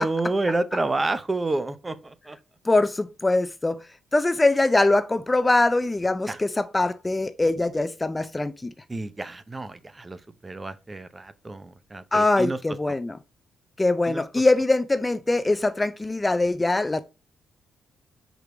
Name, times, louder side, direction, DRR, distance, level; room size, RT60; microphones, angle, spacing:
voice 1, 0.0-2.4 6.3-6.4 8.9-12.6 12.9-13.0 14.1-14.2, right 2 dB, 20° right, 0.6 m, -29 dB
voice 2, 2.7-3.8 4.1-8.7 12.1-13.2 13.8-17.0, left 2 dB, 15° left, 0.4 m, -22 dB
5.1 x 4.6 x 4.9 m
cardioid pair, 105°, 0 cm